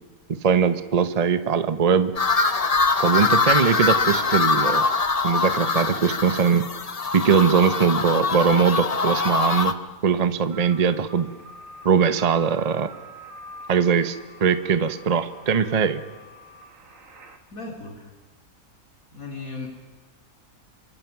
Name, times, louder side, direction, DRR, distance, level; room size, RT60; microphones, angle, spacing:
voice 1, 0.3-2.1 3.0-4.9 5.2-6.6 7.1-9.7 10.0-11.3 11.8-12.9 13.7-14.2 14.4-16.0, right 6 dB, 30° right, 11 dB, 0.9 m, -21 dB
sound 1, 2.2-9.7, left 4 dB, 30° left, 0.9 m, -23 dB
sound 2, 10.5-17.4, right 1 dB, 65° right, 2.3 m, -45 dB
voice 2, 17.5-18.1 19.1-19.7, left 3 dB, 70° left, 0 dB, 3.2 m, -36 dB
28.0 x 24.0 x 6.0 m, 1.3 s
omnidirectional pair, 1.5 m